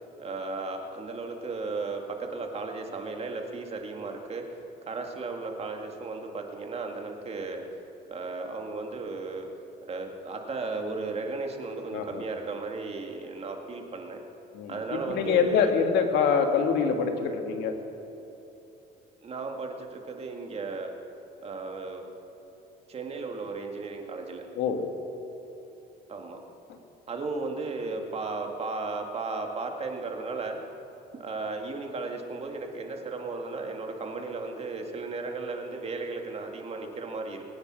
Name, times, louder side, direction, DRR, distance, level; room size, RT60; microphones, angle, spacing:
voice 1, 0.2-4.4 4.9-7.6 8.1-9.5 9.9-14.2 14.7-15.7 19.2-20.9 21.4-22.0 22.9-24.5 26.1-26.4 27.1-30.6 31.1-37.4, right 3 dB, 35° right, 3 dB, 2.1 m, -35 dB
voice 2, 11.9-12.2 14.5-14.7 15.1-17.8 24.6-24.8, left 6 dB, 80° left, 5 dB, 1.7 m, -25 dB
22.0 x 9.5 x 6.3 m, 3.0 s
cardioid pair, 110°, 17 cm